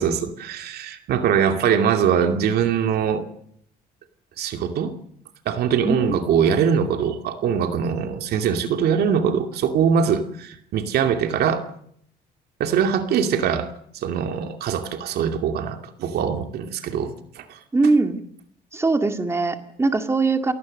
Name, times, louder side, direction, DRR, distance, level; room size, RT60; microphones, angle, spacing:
voice 1, 0.0-3.2 4.4-4.9 5.5-11.7 12.6-13.7 13.9-17.6, right 7 dB, 70° right, 6 dB, 2.5 m, -22 dB
voice 2, 5.8-6.2 17.7-18.2 18.7-20.5, right 3 dB, 15° right, 6 dB, 2.1 m, -21 dB
28.0 x 18.5 x 6.6 m, 0.68 s
cardioid pair, 110°, 17 cm